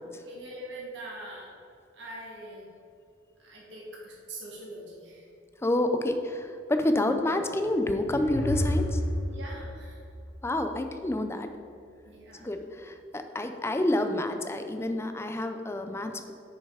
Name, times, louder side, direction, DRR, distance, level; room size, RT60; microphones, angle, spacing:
voice 1, 0.2-1.5 1.9-2.7 3.4-5.3 9.3-10.0 12.1-12.5, right 1 dB, 70° right, -4 dB, 1.8 m, -43 dB
voice 2, 5.6-9.0 10.4-11.5 12.3-16.3, left 1 dB, 15° left, 7 dB, 0.5 m, -28 dB
sound 1, 7.7-11.0, left 1 dB, 75° left, 0.8 m, -32 dB
6.5 x 5.6 x 4.9 m, 2.5 s
head